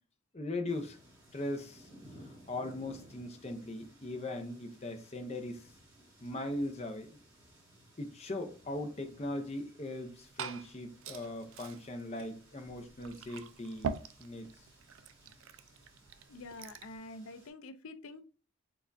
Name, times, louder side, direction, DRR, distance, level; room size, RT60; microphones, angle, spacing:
voice 1, 0.3-1.0 1.3-1.9 2.2-5.7 6.2-7.2 8.0-14.5, left 1 dB, 30° left, 0.6 m, -39 dB
sound 1, 0.7-17.5, equal, 10° right, 2.1 m, -59 dB
Glass / Fill (with liquid), 9.9-17.0, right 5 dB, 70° right, 0.4 m, -45 dB
voice 2, 16.3-18.2, left 2 dB, 75° left, 0.4 m, -47 dB
4.6 x 3.4 x 2.6 m
head